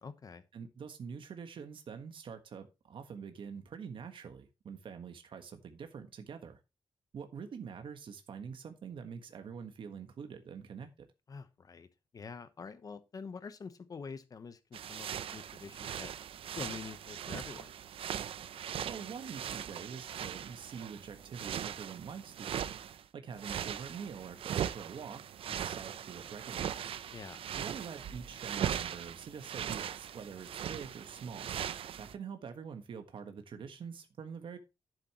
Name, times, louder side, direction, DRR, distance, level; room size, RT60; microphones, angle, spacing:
voice 1, 0.0-0.4 11.3-11.9 12.1-16.1 16.6-17.7 27.1-27.4, left 5 dB, 40° left, 1.0 m, -46 dB
voice 2, 0.5-6.6 7.1-10.9 18.8-22.7 23.1-25.2 25.5-26.8 27.5-31.5 32.0-34.6, right 6 dB, 65° right, 1.4 m, -45 dB
sound 1, 14.7-23.0 23.3-32.1, right 9 dB, 85° right, 0.7 m, -40 dB
11.0 x 8.1 x 3.0 m
wide cardioid pair, 150°, 9 cm